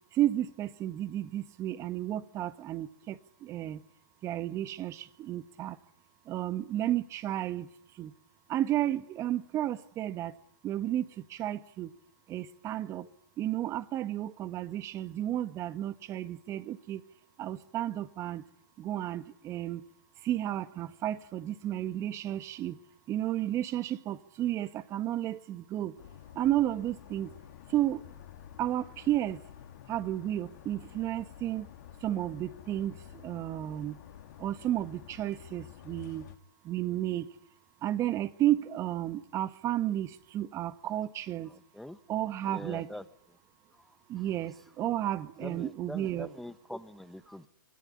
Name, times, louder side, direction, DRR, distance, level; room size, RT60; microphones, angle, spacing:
voice 1, 0.1-3.8 4.2-5.8 6.2-7.7 8.0-8.1 8.5-10.4 10.6-11.9 12.3-13.1 13.4-17.0 17.4-18.4 18.8-19.8 20.2-22.8 23.1-25.9 26.3-27.3 27.7-28.0 28.6-29.4 29.9-31.7 32.0-34.0 34.4-36.2 36.6-37.3 37.8-41.5 42.1-42.9 44.1-46.3, right 13 dB, 25° right, 1.6 m, -32 dB
sound 1, 26.0-36.4, left 11 dB, 55° left, 2.7 m, -50 dB
voice 2, 41.5-42.0 42.4-43.4 43.8-44.2 45.4-47.5, left 1 dB, ahead, 1.3 m, -44 dB
26.5 x 22.5 x 9.9 m
hypercardioid pair, 125°, 11 cm